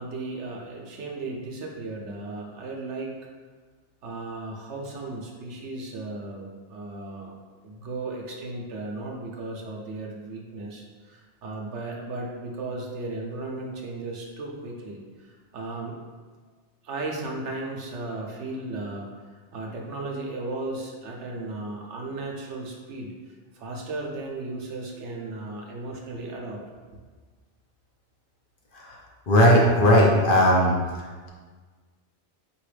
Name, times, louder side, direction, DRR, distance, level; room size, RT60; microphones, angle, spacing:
voice 1, 0.0-3.1 4.0-7.3 7.6-16.0 16.8-19.1 19.5-23.1 23.5-27.0, right 2 dB, 75° right, -1 dB, 1.1 m, -35 dB
voice 2, 29.3-31.3, equal, 55° left, -2 dB, 0.9 m, -19 dB
4.8 x 3.0 x 3.2 m, 1.4 s
omnidirectional pair, 1.2 m